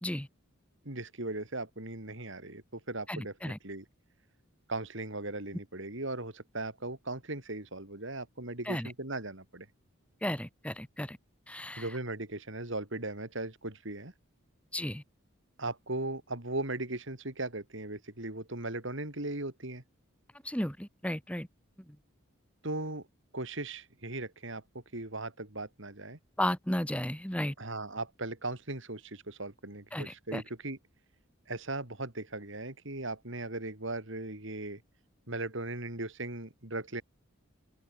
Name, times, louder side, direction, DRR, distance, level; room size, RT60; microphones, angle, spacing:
voice 1, 0.8-3.8 4.7-9.7 11.8-14.1 15.6-19.8 22.6-23.1 23.3-26.2 27.6-30.8 31.5-34.8 35.3-37.0, right 2 dB, 65° right, 3.2 m, -38 dB
voice 2, 3.1-3.6 8.7-8.9 10.2-11.2 11.5-11.9 14.7-15.0 20.4-21.5 21.8-22.0 26.4-27.6 29.9-30.4, left 1 dB, 5° left, 1.7 m, -34 dB
open air
head